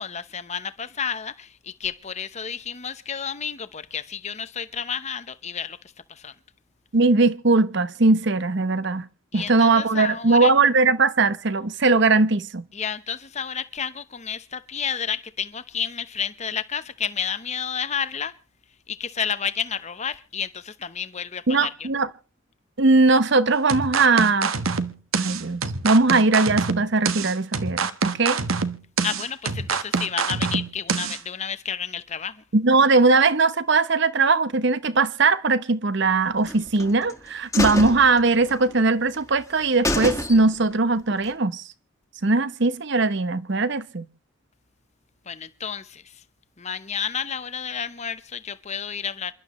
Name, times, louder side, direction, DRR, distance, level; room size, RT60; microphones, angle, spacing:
voice 1, 0.0-5.8 6.1-6.3 9.3-10.5 12.7-18.3 18.9-21.9 29.0-32.4 45.3-46.2 46.6-49.3, left 7 dB, 35° left, 0.9 m, -31 dB
voice 2, 6.9-9.1 9.3-12.6 21.5-22.1 22.8-24.5 25.1-28.4 32.5-41.6 42.2-44.0, right 3 dB, 55° right, 0.9 m, -20 dB
sound 1, 23.7-31.2, right 5 dB, 90° right, 1.3 m, -26 dB
sound 2, 36.4-37.1 37.5-38.8 39.1-39.2 39.5-39.6 39.8-40.7 41.1-41.2, left 1 dB, 15° left, 1.8 m, -27 dB
27.5 x 12.0 x 3.1 m
head